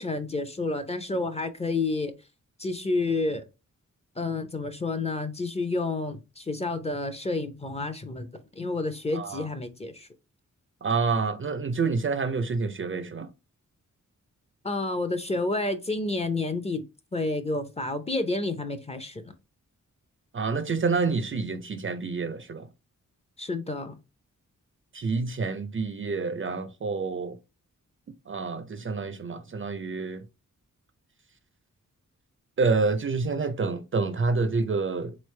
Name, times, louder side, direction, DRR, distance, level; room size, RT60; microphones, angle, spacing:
voice 1, 0.0-2.1 2.6-3.4 4.2-10.1 14.6-16.8 17.1-19.3 23.4-24.0, left 2 dB, 20° left, 0.5 m, -30 dB
voice 2, 9.1-9.5 10.8-13.3 20.3-22.7 24.9-27.4 28.3-30.2 32.6-35.2, right 4 dB, 40° right, 0.4 m, -28 dB
3.9 x 3.2 x 3.1 m
wide cardioid pair, 135°, 32 cm